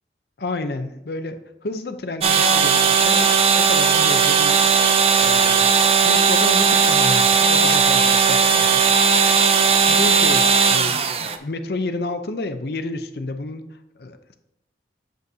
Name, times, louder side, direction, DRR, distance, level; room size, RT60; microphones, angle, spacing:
voice 1, 0.4-5.7 6.0-8.9 9.9-14.3, left 2 dB, 65° left, 9 dB, 0.6 m, -30 dB
sound 1, 2.2-11.4, right 6 dB, 35° right, 0.4 m, -17 dB
7.8 x 7.7 x 2.7 m, 0.87 s
head